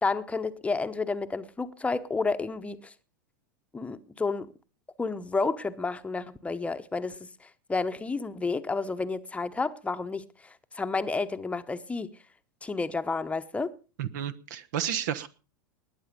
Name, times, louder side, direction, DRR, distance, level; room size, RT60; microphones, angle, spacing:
voice 1, 0.0-2.9 3.7-4.5 5.0-12.1 12.6-13.7, left 4 dB, 10° left, 0.9 m, -31 dB
voice 2, 14.0-15.3, right 10 dB, 60° right, 1.1 m, -31 dB
20.0 x 9.0 x 5.3 m
figure-of-eight pair, 90°, 11 cm